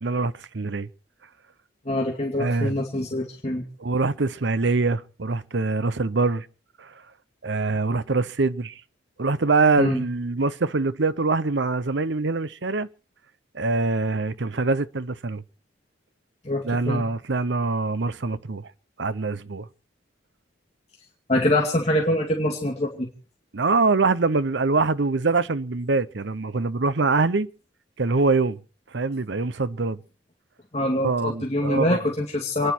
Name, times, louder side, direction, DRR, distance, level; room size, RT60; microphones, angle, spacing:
voice 1, 0.0-0.9 2.4-2.7 3.8-6.5 6.8-6.9 7.4-8.8 9.2-12.9 13.5-15.4 16.6-18.7 19.0-19.7 23.5-27.5 28.0-28.6 28.9-30.0 31.0-32.0, right 3 dB, 65° right, 0.8 m, -24 dB
voice 2, 1.9-3.6 9.8-10.0 16.4-17.0 21.3-23.1 30.7-32.7, left 1 dB, 35° left, 2.3 m, -24 dB
29.0 x 10.5 x 4.5 m
head